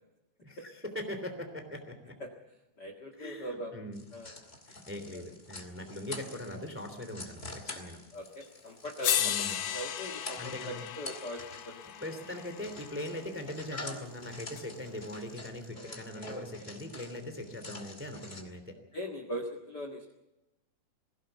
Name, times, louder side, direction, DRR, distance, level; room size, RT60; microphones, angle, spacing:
voice 1, 0.4-2.2 3.1-4.0 4.7-8.0 9.2-9.6 10.4-10.8 12.0-18.8, left 1 dB, 5° right, 6 dB, 2.2 m, -41 dB
voice 2, 2.8-3.7 4.1-4.3 5.1-5.2 8.1-9.2 9.7-11.8 15.7-16.4 18.9-20.1, equal, 40° left, 4 dB, 1.6 m, -41 dB
sound 1, 3.9-18.4, left 2 dB, 20° left, 1.8 m, -47 dB
sound 2, 8.4-8.5 9.0-13.2 14.6-14.7, left 11 dB, 80° left, 3.2 m, -35 dB
22.0 x 16.5 x 8.1 m, 0.96 s
omnidirectional pair, 4.4 m